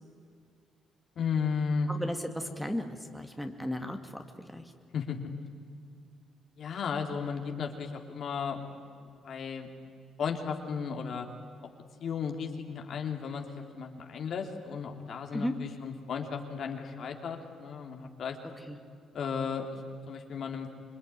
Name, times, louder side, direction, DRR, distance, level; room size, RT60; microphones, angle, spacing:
voice 1, 1.2-1.9 4.9-5.2 6.6-8.6 9.2-9.7 10.2-11.3 12.0-18.4 19.1-19.8 20.1-20.7, left 6 dB, 60° left, 3 dB, 3.3 m, -34 dB
voice 2, 1.9-4.7 15.3-15.5 18.7-18.8, left 1 dB, ahead, 4 dB, 2.2 m, -35 dB
26.5 x 22.0 x 10.0 m, 2.3 s
cardioid pair, 90°, 0 cm